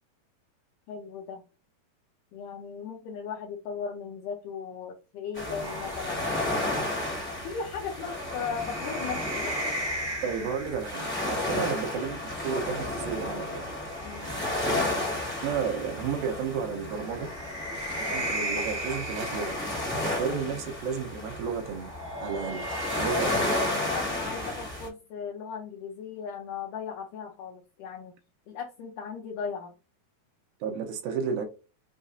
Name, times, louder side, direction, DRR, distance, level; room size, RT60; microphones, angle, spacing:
voice 1, 0.9-1.4 2.3-6.2 7.2-9.6 11.4-11.6 14.0-14.3 20.3-20.5 23.9-28.1 28.5-29.7, left 6 dB, 80° left, 1.9 m, -37 dB
sound 1, 5.3-24.9, left 1 dB, 10° left, 0.6 m, -32 dB
sound 2, 5.6-11.1 12.5-15.5 16.9-20.3 21.6-24.5, right 1 dB, 60° right, 0.4 m, -38 dB
voice 2, 10.2-13.6 15.4-17.3 17.7-19.6 20.2-21.9 22.2-22.6 22.9-23.4 30.6-31.5, right 6 dB, 80° right, 2.3 m, -32 dB
6.2 x 2.5 x 2.4 m
omnidirectional pair, 4.3 m